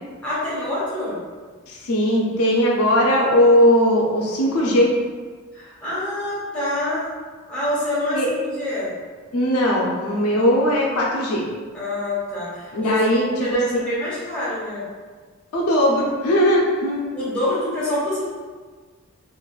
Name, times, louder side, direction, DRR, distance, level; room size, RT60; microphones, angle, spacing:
voice 1, 0.2-1.2 5.5-7.1 7.5-8.9 11.7-12.9 13.3-14.8 17.1-18.2, left 1 dB, 5° left, -9 dB, 1.0 m, -26 dB
voice 2, 1.7-4.9 8.1-8.3 9.3-11.4 12.7-13.8 15.5-17.0, equal, 90° left, -3 dB, 0.6 m, -19 dB
3.8 x 2.5 x 2.4 m, 1.5 s
head